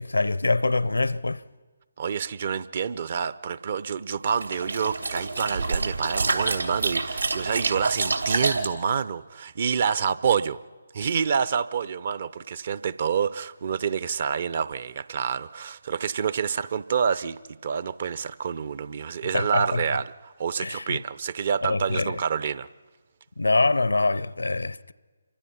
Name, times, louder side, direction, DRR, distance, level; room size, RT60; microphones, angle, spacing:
voice 1, 0.0-1.4 19.3-19.8 20.6-21.0 21.6-22.2 23.4-24.9, left 3 dB, 70° left, 0.7 m, -24 dB
voice 2, 2.0-10.6 10.9-22.7, right 7 dB, 40° right, 0.6 m, -28 dB
sound 1, 4.3-8.7, right 3 dB, 75° right, 2.9 m, -27 dB
28.0 x 24.5 x 5.8 m
figure-of-eight pair, 145°, 0 cm